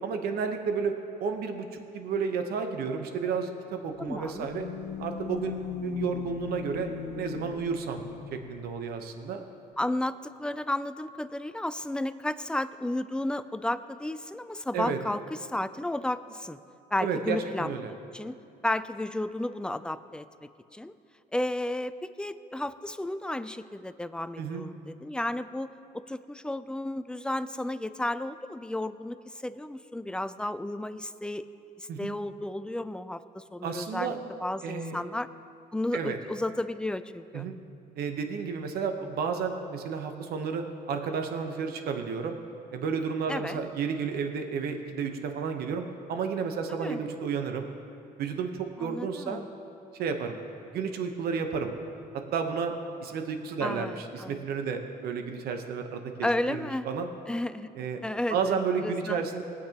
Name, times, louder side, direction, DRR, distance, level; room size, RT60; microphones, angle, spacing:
voice 1, 0.0-4.7 5.0-6.9 7.1-8.0 8.3-9.4 14.7-15.0 17.0-17.9 24.4-24.7 31.9-32.2 33.6-34.2 34.6-35.0 35.9-36.2 37.3-37.6 38.0-42.4 42.7-47.7 48.2-49.4 50.0-50.4 50.7-51.7 52.3-52.7 53.0-57.1 57.8-58.0 58.3-59.4, right 6 dB, 65° right, 5 dB, 1.0 m, -32 dB
sound 1, 3.8-8.7, left 8 dB, 85° left, 0.7 m, -38 dB
voice 2, 4.0-4.5 9.8-16.6 16.9-18.4 18.6-20.9 21.3-25.7 25.9-31.5 31.8-34.1 34.4-35.3 35.7-37.5 43.3-43.6 46.8-47.0 48.8-49.5 53.6-54.4 56.2-56.9 57.3-57.7 58.0-59.2, left 1 dB, 5° left, 12 dB, 0.3 m, -33 dB
19.5 x 8.6 x 2.9 m, 2.6 s
cardioid pair, 110°, 17 cm